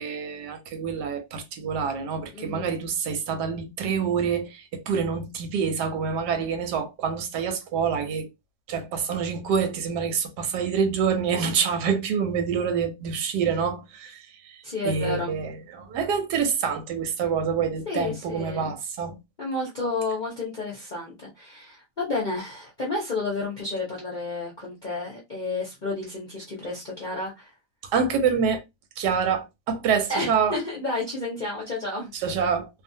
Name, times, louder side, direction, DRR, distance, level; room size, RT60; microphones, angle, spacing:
voice 1, 0.0-8.3 8.7-14.6 14.8-19.2 27.9-28.6 29.0-30.6 32.1-32.7, right 6 dB, 85° right, 1.2 m, -26 dB
voice 2, 2.3-2.7 14.6-15.3 17.9-18.7 19.4-27.5 30.1-32.1, left 3 dB, 45° left, 0.6 m, -31 dB
2.7 x 2.3 x 2.6 m
omnidirectional pair, 1.8 m